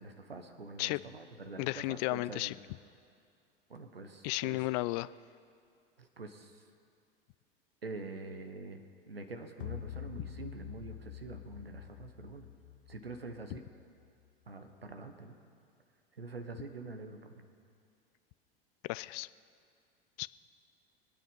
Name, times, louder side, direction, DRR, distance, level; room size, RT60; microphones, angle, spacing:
voice 1, 0.0-2.5 3.7-4.6 6.0-6.6 7.8-12.5 12.9-13.7 14.5-15.4 16.2-17.4, right 3 dB, 90° right, 7 dB, 1.1 m, -46 dB
voice 2, 1.6-2.5 4.2-5.1 18.9-19.3 20.2-20.3, left 21 dB, 45° left, 18 dB, 0.4 m, -33 dB
sound 1, 9.6-14.1, left 10 dB, 70° left, 1.3 m, -46 dB
23.0 x 9.0 x 5.4 m, 2.3 s
figure-of-eight pair, 85°, 29 cm